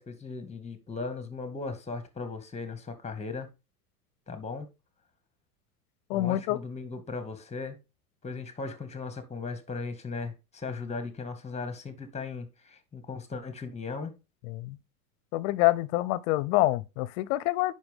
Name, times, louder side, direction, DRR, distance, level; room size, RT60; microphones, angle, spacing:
voice 1, 0.0-3.5 4.3-4.7 6.1-7.8 8.2-14.1, left 4 dB, 15° left, 2.0 m, -37 dB
voice 2, 6.1-6.6 14.5-14.8 15.3-17.7, left 17 dB, 60° left, 0.9 m, -26 dB
8.9 x 6.0 x 3.6 m
hypercardioid pair, 105°, 45 cm